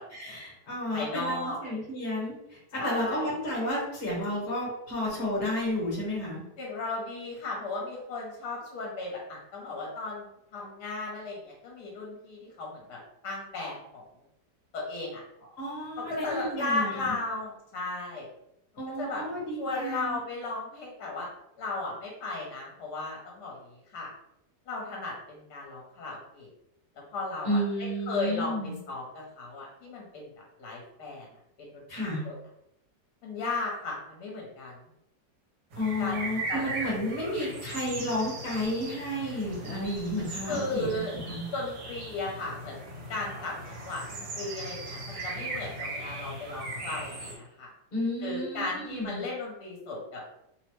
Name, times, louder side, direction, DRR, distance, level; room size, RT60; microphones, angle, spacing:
voice 1, 0.1-6.4 15.6-17.1 18.8-20.2 27.4-28.8 31.9-32.3 35.8-41.4 47.9-49.2, left 1 dB, 40° left, -5 dB, 1.1 m, -32 dB
voice 2, 0.9-1.8 2.8-3.3 6.6-10.2 10.5-14.0 14.7-15.2 16.0-18.3 19.0-19.2 19.6-21.3 21.6-23.6 23.9-24.1 24.7-26.5 27.1-27.6 28.1-30.3 30.6-31.3 31.6-32.3 33.2-34.7 36.0-36.2 36.5-36.6 40.5-41.1 41.5-42.8 43.1-47.7 48.2-50.2, left 2 dB, 70° left, -2 dB, 1.2 m, -35 dB
sound 1, 35.7-47.3, right 2 dB, 70° right, 1.3 m, -39 dB
3.0 x 2.0 x 3.0 m, 0.79 s
omnidirectional pair, 1.9 m